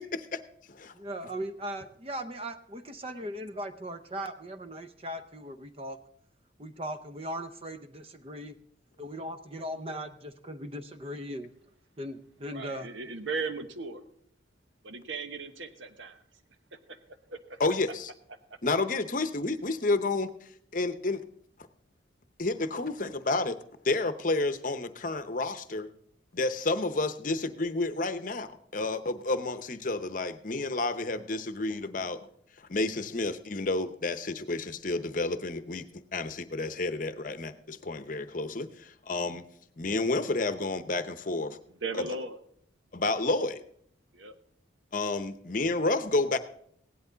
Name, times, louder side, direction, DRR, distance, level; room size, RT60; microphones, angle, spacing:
voice 1, 0.9-6.0 6.6-8.6 9.0-11.5 12.0-12.9, equal, 30° right, 9 dB, 0.7 m, -38 dB
voice 2, 12.5-14.0 14.8-16.2 16.7-17.0 17.3-17.6 41.7-42.4 44.1-44.4, right 4 dB, 75° right, 8 dB, 1.1 m, -37 dB
voice 3, 17.6-18.1 18.6-21.2 22.4-23.6 23.8-25.9 26.3-32.2 32.7-35.8 36.1-39.4 39.8-41.6 42.9-43.6 44.9-46.4, left 2 dB, 45° left, 11 dB, 0.8 m, -30 dB
16.5 x 10.5 x 4.0 m, 0.66 s
head